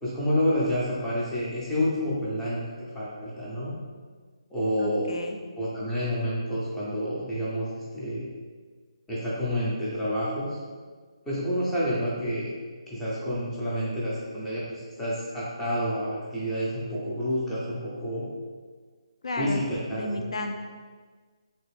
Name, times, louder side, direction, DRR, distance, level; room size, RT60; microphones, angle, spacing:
voice 1, 0.0-3.7 4.5-5.1 5.6-8.2 9.1-10.6 11.2-12.5 12.9-18.3 19.3-20.2, equal, 5° left, -9 dB, 0.4 m, -29 dB
voice 2, 4.8-5.4 19.2-19.6 20.0-20.6, left 2 dB, 70° left, 4 dB, 0.4 m, -32 dB
3.1 x 2.8 x 3.1 m, 1.5 s
hypercardioid pair, 175°, 3 cm